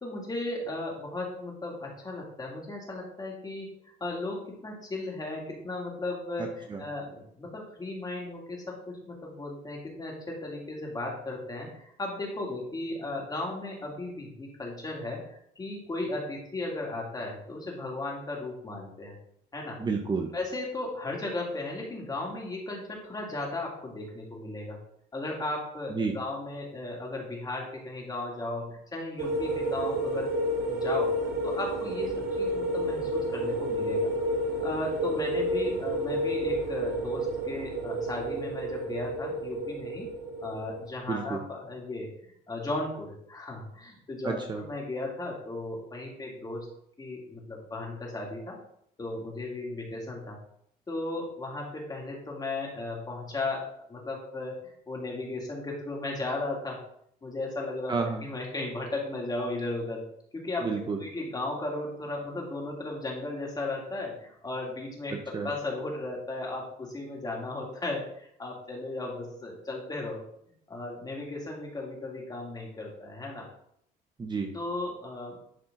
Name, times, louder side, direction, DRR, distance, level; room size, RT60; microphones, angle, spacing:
voice 1, 0.0-3.7 4.0-19.1 19.5-19.8 20.3-24.8 25.1-30.3 30.7-31.1 31.4-34.1 34.6-40.1 40.4-42.1 42.5-46.7 47.0-48.6 49.0-50.4 50.9-56.8 57.2-60.0 60.3-60.7 61.0-70.2 70.7-73.5 74.5-75.4, left 2 dB, 25° left, -1 dB, 2.7 m, -36 dB
voice 2, 6.4-6.8 19.8-20.3 25.9-26.2 41.1-41.4 44.2-44.6 57.9-58.2 60.6-61.0 65.3-65.5 74.2-74.5, right 4 dB, 25° right, 3 dB, 1.0 m, -30 dB
sound 1, 29.2-40.9, right 1 dB, 70° right, 2.2 m, -30 dB
11.0 x 4.4 x 4.0 m, 0.71 s
cardioid pair, 110°, 17 cm